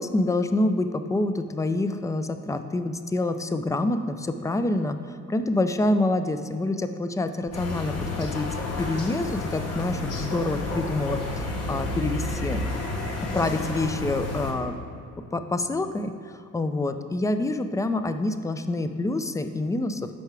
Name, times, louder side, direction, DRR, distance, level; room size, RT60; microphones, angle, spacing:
voice 1, 0.0-12.7 13.3-14.8 15.3-20.1, left 2 dB, 10° left, 9 dB, 0.4 m, -27 dB
Sunny afternoon, 7.5-14.5, left 2 dB, 55° left, 1.3 m, -31 dB
9.3 x 5.7 x 3.3 m, 2.4 s
cardioid pair, 90°, 30 cm